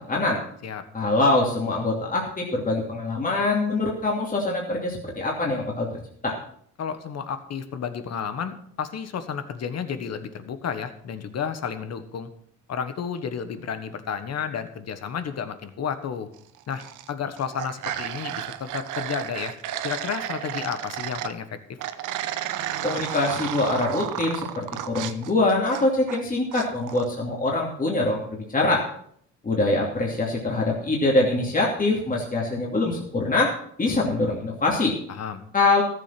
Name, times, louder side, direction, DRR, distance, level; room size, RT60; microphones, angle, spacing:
voice 1, 0.1-0.4 0.9-5.9 6.2-6.4 22.8-28.8 29.4-33.5 33.8-35.0 35.5-35.8, left 2 dB, 25° left, -2 dB, 2.8 m, -24 dB
voice 2, 6.8-12.3 12.7-16.3 16.7-16.8 17.1-19.5 19.8-21.5 35.1-35.4, left 7 dB, 60° left, 10 dB, 1.4 m, -32 dB
sound 1, 16.5-17.1 17.4-21.3 21.8-26.2 26.5-27.1, right 11 dB, 85° right, 0.9 m, -32 dB
14.0 x 7.6 x 5.9 m, 0.65 s
cardioid pair, 90°, 30 cm